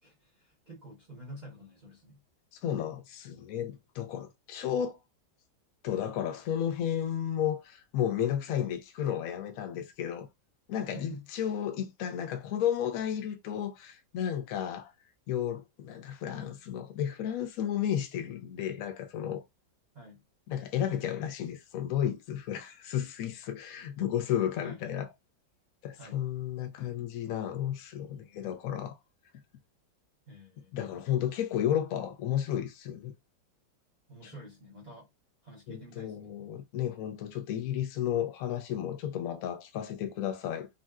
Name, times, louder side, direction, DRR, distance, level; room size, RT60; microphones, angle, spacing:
voice 1, 0.0-2.2 10.8-11.3 19.9-20.2 24.6-25.0 26.0-26.3 30.3-30.7 34.1-35.1 35.4-36.3, equal, 45° right, 0.5 m, -48 dB
voice 2, 2.5-5.0 5.8-10.3 10.7-14.9 15.3-19.4 20.5-25.1 25.8-29.0 30.7-33.1 34.2-34.3 35.7-40.7, left 10 dB, 70° left, 0.8 m, -33 dB
3.8 x 2.2 x 2.3 m
omnidirectional pair, 2.0 m